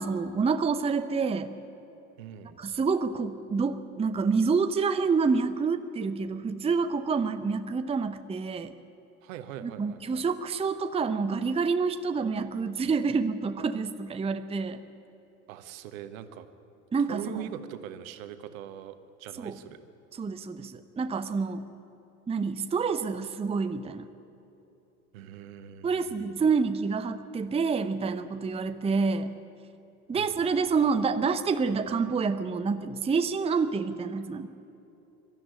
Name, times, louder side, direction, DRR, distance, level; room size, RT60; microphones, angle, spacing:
voice 1, 0.0-1.5 2.6-8.7 9.6-14.8 16.9-17.4 19.4-19.6 20.2-21.7 22.3-24.1 25.8-29.3 30.1-34.5, right 5 dB, 15° right, 10 dB, 0.8 m, -28 dB
voice 2, 2.2-2.6 9.2-10.2 15.5-16.5 17.0-19.8 25.1-26.5 30.1-30.8, right 10 dB, 60° right, 10 dB, 1.4 m, -42 dB
23.0 x 13.0 x 9.9 m, 3.0 s
figure-of-eight pair, 75°, 44 cm